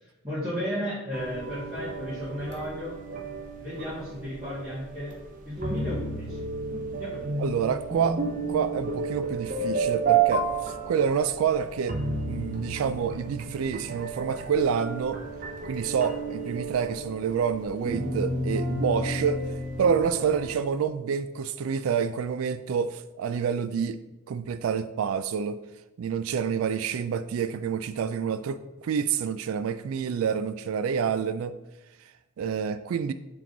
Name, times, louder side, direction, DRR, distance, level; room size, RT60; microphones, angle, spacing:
voice 1, 0.2-3.0 3.6-5.1 5.4-6.4 6.9-7.4, equal, 20° right, -14 dB, 2.1 m, -34 dB
sound 1, 1.1-20.5, right 4 dB, 40° right, 0.7 m, -32 dB
voice 2, 7.4-8.2 8.5-12.0 12.3-15.2 15.7-19.4 19.8-24.0 24.3-25.6 26.0-31.5 32.4-33.1, right 7 dB, 80° right, 12 dB, 0.3 m, -28 dB
7.4 x 3.8 x 3.9 m, 1.0 s
head